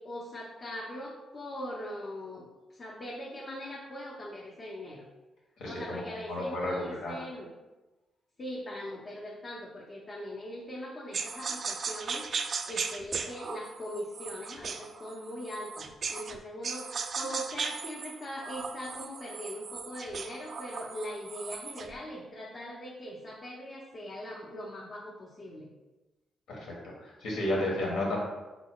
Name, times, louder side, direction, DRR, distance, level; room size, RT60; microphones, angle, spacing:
voice 1, 0.0-5.0 5.6-7.5 8.4-25.7, equal, 45° left, -4 dB, 0.8 m, -41 dB
voice 2, 5.6-7.2 26.5-28.2, left 1 dB, 85° left, -3 dB, 1.4 m, -33 dB
sound 1, 11.1-16.4 16.6-21.9, right 5 dB, 55° right, 0.3 m, -37 dB
4.6 x 3.9 x 2.3 m, 1.1 s
cardioid pair, 70°, 0 cm